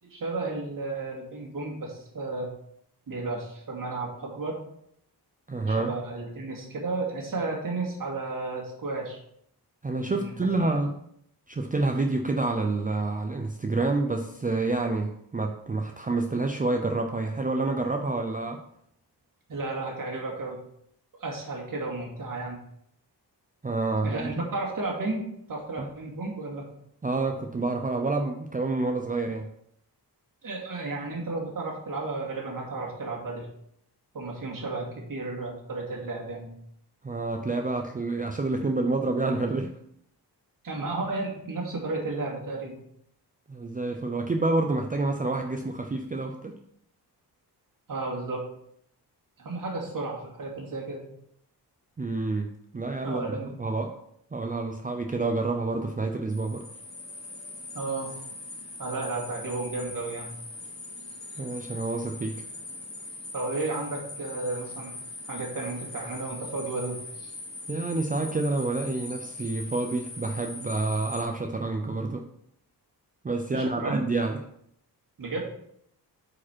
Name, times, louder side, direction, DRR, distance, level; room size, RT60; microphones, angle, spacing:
voice 1, 0.0-2.5 3.1-4.6 5.7-9.2 10.0-10.3 10.6-10.8 19.5-20.6 21.2-22.6 24.0-26.6 30.4-33.5 34.1-36.5 40.6-42.8 47.9-48.4 49.4-51.0 53.0-53.5 57.7-58.1 58.8-60.3 63.3-64.9 65.3-67.3 73.5-74.0 75.2-75.4, right 3 dB, 55° right, -2 dB, 2.4 m, -33 dB
voice 2, 5.5-5.9 9.8-10.9 11.5-18.6 23.6-24.5 25.8-25.9 27.0-29.5 37.0-39.7 43.5-46.5 52.0-53.9 54.3-56.6 61.4-62.4 67.7-72.2 73.2-74.4, right 3 dB, 20° right, 4 dB, 0.5 m, -28 dB
sound 1, 56.3-71.2, left 2 dB, 40° left, 2.3 m, -41 dB
8.5 x 5.0 x 4.4 m, 0.72 s
wide cardioid pair, 150°, 41 cm